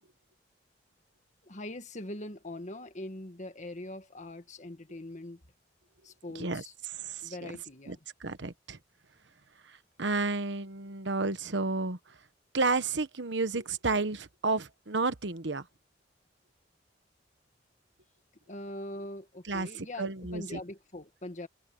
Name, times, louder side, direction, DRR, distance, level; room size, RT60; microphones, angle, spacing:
voice 1, 1.4-5.4 6.0-6.7 7.2-8.0 18.5-21.5, left 1 dB, 40° left, 1.7 m, -42 dB
voice 2, 6.3-7.5 7.9-8.8 10.0-12.0 12.5-15.6 19.5-20.6, right 3 dB, 75° right, 1.2 m, -31 dB
head